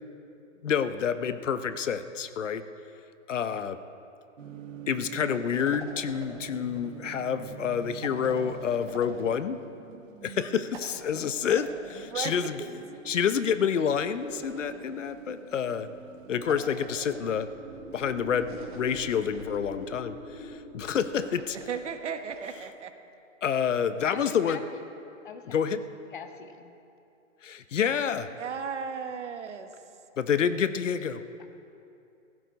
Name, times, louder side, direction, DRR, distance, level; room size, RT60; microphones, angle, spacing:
voice 1, 0.6-2.6 3.3-3.8 4.9-9.6 10.2-12.6 13.1-15.9 16.3-17.5 17.9-21.6 23.4-24.6 25.5-25.8 27.4-28.3 30.2-31.2, left 7 dB, 70° left, 12 dB, 0.9 m, -28 dB
sound 1, 4.4-19.3, right 8 dB, 80° right, 1.7 m, -46 dB
sound 2, 5.5-6.8 8.0-9.4 10.7-12.4 13.8-15.2 16.5-17.3 18.4-19.9 21.2-22.5, right 4 dB, 40° right, 1.6 m, -47 dB
sound 3, 15.9-22.0, left 1 dB, 15° left, 3.3 m, -44 dB
voice 2, 21.5-22.9 28.4-29.7, right 6 dB, 65° right, 7 dB, 1.3 m, -35 dB
voice 3, 24.1-24.6 25.2-25.6 26.1-26.7, left 6 dB, 40° left, 7 dB, 1.0 m, -41 dB
17.5 x 15.0 x 4.1 m, 2.7 s
hypercardioid pair, 170°, 38 cm